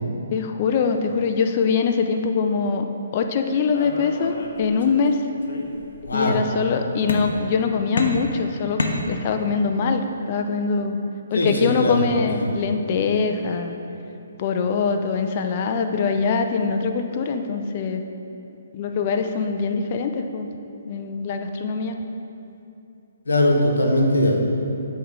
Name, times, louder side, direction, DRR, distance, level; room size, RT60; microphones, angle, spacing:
voice 1, 0.3-2.8 3.1-5.2 6.1-8.8 9.1-11.0 11.3-13.8 14.4-18.0 18.7-20.5 20.9-22.0, left 5 dB, 40° left, 5 dB, 0.4 m, -23 dB
sound 1, 3.7-5.1 5.4-6.1 7.1-7.6 8.0-9.6, left 2 dB, 65° left, 0.7 m, -29 dB
voice 2, 6.0-6.4 11.3-12.1 23.3-24.4, left 1 dB, 85° left, 1 dB, 1.0 m, -20 dB
7.9 x 3.2 x 4.7 m, 2.8 s
hypercardioid pair, 150°, 0 cm